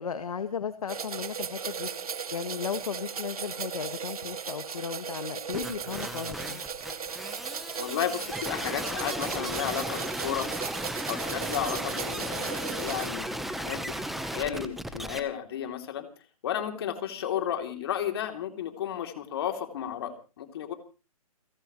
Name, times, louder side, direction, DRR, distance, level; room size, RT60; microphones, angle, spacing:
voice 1, 0.0-1.9 2.3-6.6, left 6 dB, 70° left, 9 dB, 1.7 m, -35 dB
sound 1, 0.9-13.1, right 6 dB, 80° right, 2.2 m, -37 dB
sound 2, 5.5-15.2, right 1 dB, ahead, 0.9 m, -35 dB
voice 2, 7.8-10.5 11.1-16.1 16.4-20.7, left 10 dB, 40° left, 6 dB, 3.0 m, -33 dB
29.5 x 11.5 x 3.1 m, 0.33 s
hypercardioid pair, 160°, 19 cm